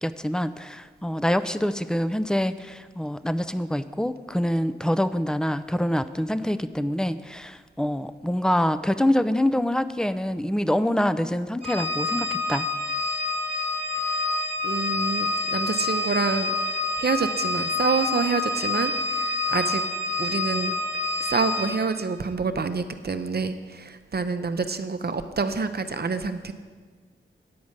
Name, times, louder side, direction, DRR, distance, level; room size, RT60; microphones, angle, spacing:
voice 1, 0.0-12.7, left 1 dB, 5° left, 12 dB, 0.4 m, -25 dB
Organ, 11.6-22.0, left 2 dB, 55° left, 2.1 m, -27 dB
voice 2, 14.6-16.5 17.0-19.8 20.2-20.7 21.2-26.5, right 4 dB, 50° right, 9 dB, 0.7 m, -27 dB
9.5 x 5.1 x 7.3 m, 1.5 s
cardioid pair, 40°, 21 cm